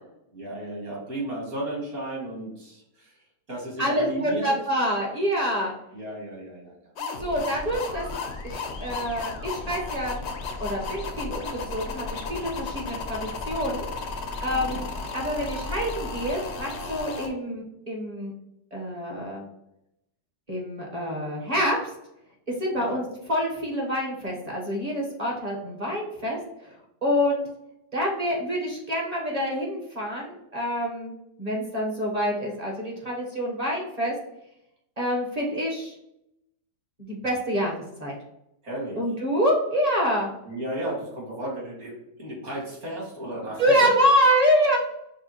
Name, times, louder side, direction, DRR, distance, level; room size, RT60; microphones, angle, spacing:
voice 1, 0.3-4.6 5.9-6.8 14.5-14.8 22.8-23.0 38.6-39.0 40.4-43.9, right 1 dB, 55° right, -4 dB, 2.3 m, -34 dB
voice 2, 3.8-5.7 7.2-8.0 8.4-10.2 10.6-13.9 14.4-14.9 15.1-18.3 18.7-19.4 20.5-21.8 22.6-26.7 27.0-27.4 27.9-31.1 31.4-34.1 35.0-36.0 37.0-37.7 38.0-38.1 39.0-40.3 43.6-44.8, equal, 30° right, -2 dB, 0.8 m, -26 dB
sound 1, 7.0-17.3, left 4 dB, 65° left, 0.7 m, -34 dB
6.3 x 2.3 x 2.8 m, 0.83 s
omnidirectional pair, 1.8 m